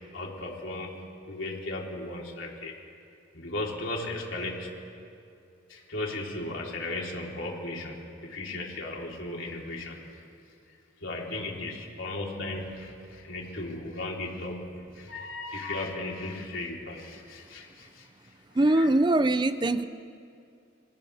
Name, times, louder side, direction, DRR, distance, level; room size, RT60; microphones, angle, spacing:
voice 1, 0.1-0.9 1.3-2.7 3.3-4.7 5.7-10.0 11.0-18.1 18.7-18.9, left 2 dB, 80° left, -2 dB, 3.9 m, -36 dB
voice 2, 18.5-19.8, right 2 dB, 25° right, 12 dB, 0.5 m, -22 dB
30.0 x 27.5 x 3.6 m, 2.5 s
head